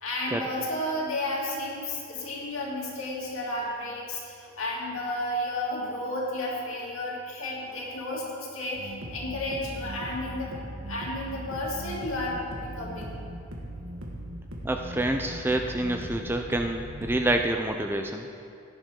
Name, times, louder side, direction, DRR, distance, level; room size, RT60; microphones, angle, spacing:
voice 1, 0.0-10.5 10.9-13.2, left 1 dB, 70° left, -4 dB, 2.7 m, -32 dB
sound 1, 8.7-17.3, right 1 dB, 70° right, 1.9 m, -39 dB
voice 2, 14.6-18.3, right 1 dB, 10° right, 4 dB, 0.4 m, -27 dB
17.0 x 10.5 x 3.8 m, 2.6 s
head